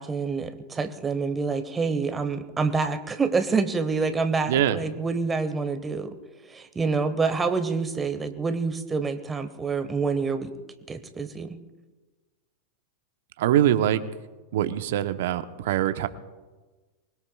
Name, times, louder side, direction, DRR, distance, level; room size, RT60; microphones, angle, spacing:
voice 1, 0.0-6.2 6.5-10.5 10.9-11.6, right 4 dB, 15° right, 9 dB, 1.3 m, -27 dB
voice 2, 4.5-4.8 13.4-14.0 14.5-16.1, right 11 dB, 60° right, 11 dB, 0.9 m, -23 dB
24.5 x 20.5 x 2.4 m, 1.3 s
figure-of-eight pair, 90°, 0 cm